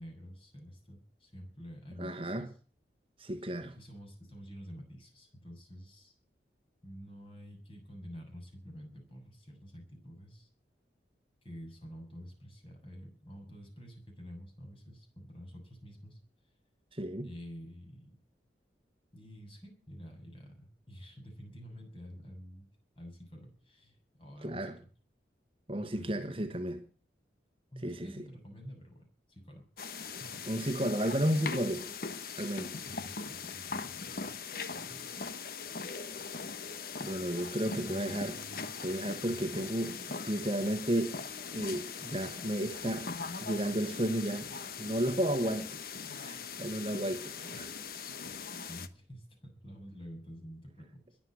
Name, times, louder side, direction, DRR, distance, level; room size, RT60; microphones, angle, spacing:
voice 1, 0.0-2.6 3.4-3.5 3.8-6.2 6.8-10.5 11.4-16.2 17.2-18.2 19.1-22.7 23.0-24.7 25.8-26.5 27.7-30.4 32.7-34.3 34.7-35.1 37.5-38.7 39.3-39.5 48.2-48.3 48.7-51.2, equal, 30° left, 7.1 m, -49 dB
voice 2, 2.0-2.5 3.2-3.7 16.9-17.3 24.4-24.8 25.7-26.8 27.8-28.1 30.5-31.9 32.4-32.8 37.0-38.4 38.8-41.2 41.5-43.1 43.4-44.5 44.8-45.8 46.1-47.7, right 1 dB, 30° right, 1.3 m, -33 dB
sound 1, 29.8-48.9, left 5 dB, 55° left, 1.2 m, -41 dB
21.5 x 7.7 x 7.7 m
head